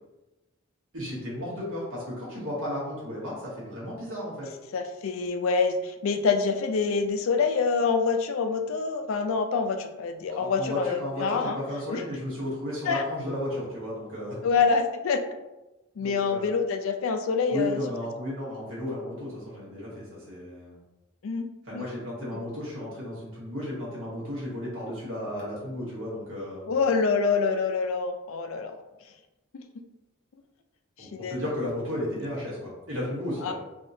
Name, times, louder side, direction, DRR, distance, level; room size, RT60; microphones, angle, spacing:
voice 1, 0.9-4.5 10.3-14.4 16.0-16.5 17.5-20.8 21.6-26.7 31.0-33.5, left 1 dB, 80° right, -6 dB, 1.2 m, -34 dB
voice 2, 4.7-11.6 11.9-12.0 12.9-13.0 14.4-15.2 16.0-17.8 21.2-21.5 21.7-21.9 22.3-22.4 26.7-28.7 29.5-29.6 31.0-31.4 33.4-33.5, left 5 dB, 75° left, 6 dB, 0.4 m, -26 dB
3.5 x 2.7 x 2.7 m, 1.0 s
head